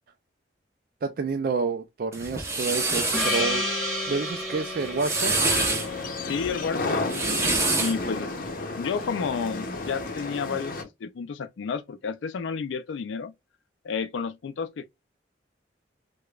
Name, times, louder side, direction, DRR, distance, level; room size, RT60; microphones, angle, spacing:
voice 1, 1.0-3.7 4.1-5.4, right 4 dB, 50° right, 0.4 m, -29 dB
sound 1, 2.1-3.4 4.8-5.9 6.9-8.0, right 3 dB, 15° right, 0.8 m, -26 dB
Gong, 3.1-7.9, left 1 dB, 5° left, 1.6 m, -32 dB
sound 2, 5.2-10.8, left 3 dB, 50° left, 0.7 m, -33 dB
voice 2, 6.2-8.4 8.8-13.3 13.8-14.9, left 5 dB, 85° left, 0.4 m, -31 dB
4.8 x 2.2 x 2.3 m
head